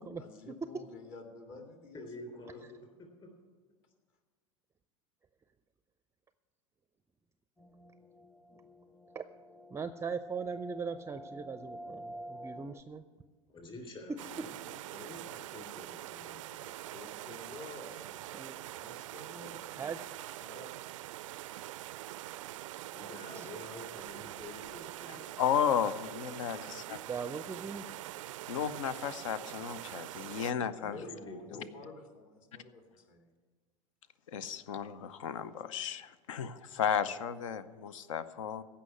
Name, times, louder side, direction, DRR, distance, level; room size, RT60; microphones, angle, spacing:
voice 1, 0.2-2.7 16.9-19.7 20.3-21.0 30.9-33.3 37.9-38.0, left 3 dB, 50° left, 4 dB, 2.3 m, -51 dB
voice 2, 1.9-2.9 3.2-3.3 13.5-14.6 14.9-16.7 22.9-25.4 30.4-31.7, left 1 dB, 30° left, 3 dB, 3.4 m, -48 dB
sound 1, 7.6-12.8, right 1 dB, 10° left, 0.8 m, -48 dB
voice 3, 9.7-13.0 18.3-18.5 19.8-20.0 23.3-23.5 27.1-27.9, right 5 dB, 15° right, 12 dB, 0.5 m, -39 dB
sound 2, 14.2-30.5, right 15 dB, 70° right, 0.4 m, -44 dB
voice 4, 25.1-27.0 28.5-31.0 31.5-31.6 34.3-38.6, left 8 dB, 70° left, 15 dB, 0.7 m, -34 dB
15.5 x 5.7 x 9.4 m, 1.4 s
hypercardioid pair, 80°, 17 cm